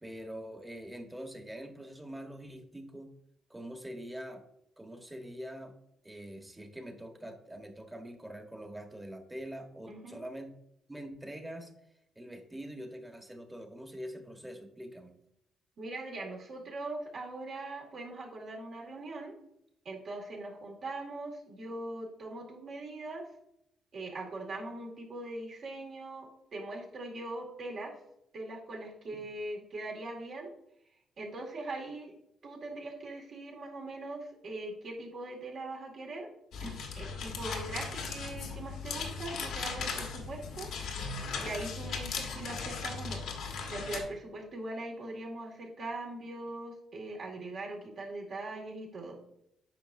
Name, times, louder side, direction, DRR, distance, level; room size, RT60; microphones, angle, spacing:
voice 1, 0.0-3.1 3.5-4.4 4.8-5.7 6.0-10.5 10.9-11.7 12.1-15.1, equal, 10° right, 4 dB, 1.2 m, -44 dB
voice 2, 9.9-10.2 15.8-19.3 19.8-23.3 23.9-27.9 28.3-30.5 31.2-32.1 32.4-36.3 36.6-40.7 41.4-43.3 43.7-49.2, right 2 dB, 60° right, -1 dB, 2.1 m, -41 dB
sound 1, 36.5-44.0, left 5 dB, 80° left, 1.4 m, -38 dB
9.1 x 5.4 x 2.7 m, 0.77 s
cardioid pair, 90°, 0 cm